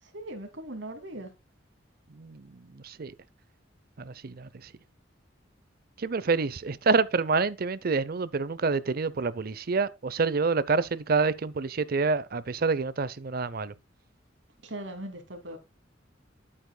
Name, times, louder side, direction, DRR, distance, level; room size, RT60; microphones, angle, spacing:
voice 1, 0.0-1.3 14.6-15.6, right 1 dB, 70° right, 2.5 m, -39 dB
voice 2, 2.1-3.1 4.0-4.7 6.0-13.7, right 4 dB, 50° right, 0.6 m, -27 dB
10.5 x 8.7 x 2.2 m
head